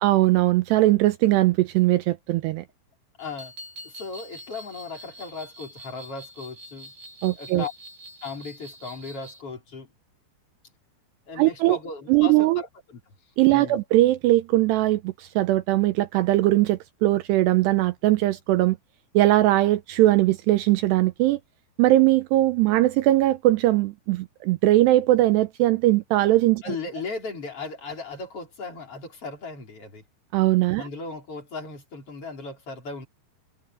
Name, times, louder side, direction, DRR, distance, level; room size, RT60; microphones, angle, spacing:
voice 1, 0.0-2.6 7.2-7.7 11.4-11.8 12.1-12.6 13.4-18.8 19.1-21.4 21.8-26.8 30.3-30.9, right 16 dB, 85° right, 2.6 m, -20 dB
voice 2, 3.2-3.5 3.8-6.9 7.4-7.7 8.2-9.9 11.3-13.0 13.5-13.8 26.6-30.0 30.8-33.1, left 4 dB, 30° left, 5.5 m, -36 dB
sound 1, 3.2-9.4, right 1 dB, 65° right, 1.1 m, -45 dB
omnidirectional pair, 5.4 m